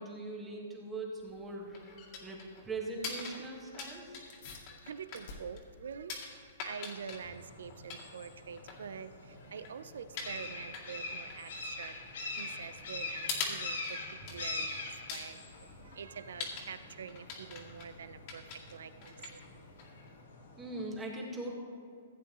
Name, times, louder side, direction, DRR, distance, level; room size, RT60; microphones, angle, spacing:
voice 1, 0.0-1.9 2.2-4.2 20.6-21.5, right 2 dB, 10° right, -1 dB, 1.6 m, -41 dB
sound 1, 1.2-20.2, left 4 dB, 40° left, 2.0 m, -45 dB
sound 2, 4.3-14.2, left 3 dB, 55° left, 1.6 m, -58 dB
voice 2, 4.7-11.9 12.2-19.4, right 6 dB, 80° right, 13 dB, 0.5 m, -46 dB
sound 3, 7.1-20.9, left 2 dB, 75° left, 2.3 m, -44 dB
15.5 x 8.5 x 3.1 m, 2.4 s
hypercardioid pair, 155°, 0 cm